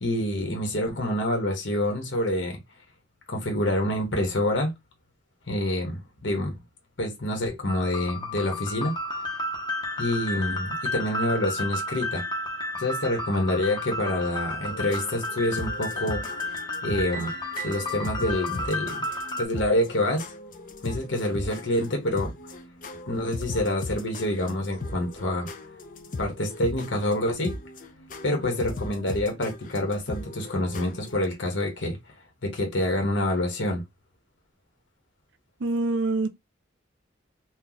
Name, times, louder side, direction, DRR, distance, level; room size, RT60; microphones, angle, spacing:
voice 1, 0.0-2.6 3.3-4.7 5.5-6.5 7.0-9.2 10.0-12.2 12.8-16.5 16.8-17.3 17.6-19.1 19.4-20.3 20.8-22.5 23.1-25.5 26.2-27.5 28.2-32.1 32.4-33.8, left 1 dB, 70° left, 1.4 m, -27 dB
sound 1, 7.7-19.4, left 1 dB, 25° left, 1.0 m, -32 dB
sound 2, 14.7-31.3, left 2 dB, 45° left, 0.6 m, -38 dB
voice 2, 35.6-36.3, right 2 dB, 70° right, 0.6 m, -25 dB
3.0 x 2.6 x 3.9 m
head